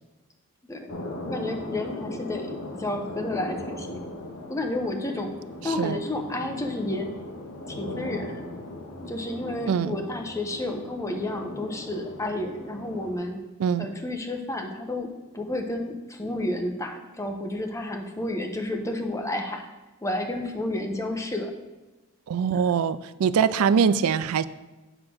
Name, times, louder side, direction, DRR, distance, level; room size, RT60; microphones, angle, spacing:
sound 1, 0.9-13.1, left 1 dB, 65° left, 1.0 m, -38 dB
voice 1, 1.3-4.1 4.5-5.3 5.6-7.1 7.7-8.4 9.1-13.4 13.8-19.7 20.0-21.5, left 1 dB, 15° left, 3 dB, 0.8 m, -31 dB
voice 2, 5.6-6.0 9.7-10.0 13.6-13.9 22.3-24.4, right 6 dB, 85° right, 15 dB, 0.4 m, -23 dB
8.0 x 3.7 x 6.1 m, 1.1 s
head